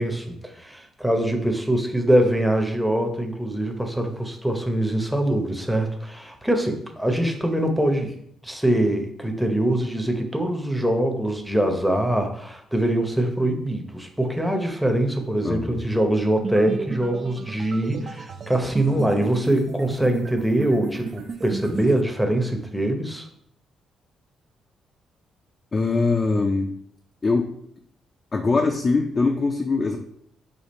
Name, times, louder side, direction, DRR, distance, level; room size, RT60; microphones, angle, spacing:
voice 1, 0.0-8.2 8.4-23.3, right 1 dB, ahead, 3 dB, 0.7 m, -23 dB
voice 2, 15.4-15.8 25.7-26.7 27.2-27.5 28.3-30.0, left 3 dB, 35° left, 3 dB, 0.4 m, -22 dB
sound 1, 16.4-22.0, right 4 dB, 50° right, 0.4 m, -34 dB
5.1 x 2.4 x 4.1 m, 0.67 s
cardioid pair, 90°, 0 cm